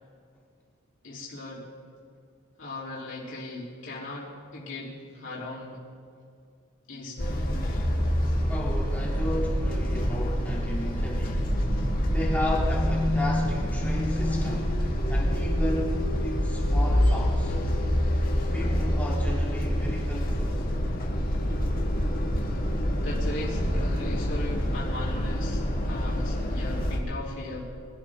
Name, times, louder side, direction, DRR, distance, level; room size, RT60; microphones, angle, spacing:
voice 1, 1.0-1.7 2.6-5.8 6.9-7.4 23.0-27.7, left 2 dB, 60° left, -7 dB, 3.4 m, -38 dB
sound 1, 7.2-27.0, equal, 45° left, 1.8 m, -26 dB
voice 2, 8.5-14.8 15.1-17.6 18.5-20.6, left 1 dB, 10° left, -5 dB, 2.8 m, -34 dB
24.0 x 11.5 x 3.7 m, 2.2 s
head